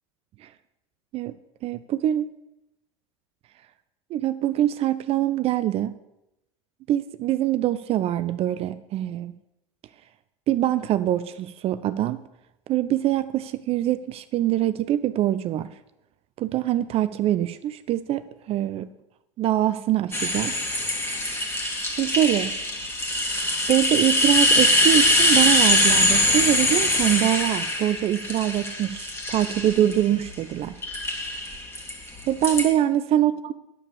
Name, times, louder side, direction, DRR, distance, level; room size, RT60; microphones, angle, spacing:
voice 1, 1.6-2.3 4.1-5.9 6.9-9.3 10.5-12.2 12.7-15.7 16.4-18.9 19.4-20.6 21.9-22.5 23.7-30.8 32.3-33.5, right 12 dB, 40° right, 13 dB, 0.5 m, -24 dB
sound 1, 20.1-30.3 30.8-32.6, left 1 dB, 15° left, 2.2 m, -22 dB
9.6 x 7.1 x 7.0 m, 0.89 s
figure-of-eight pair, 75°, 16 cm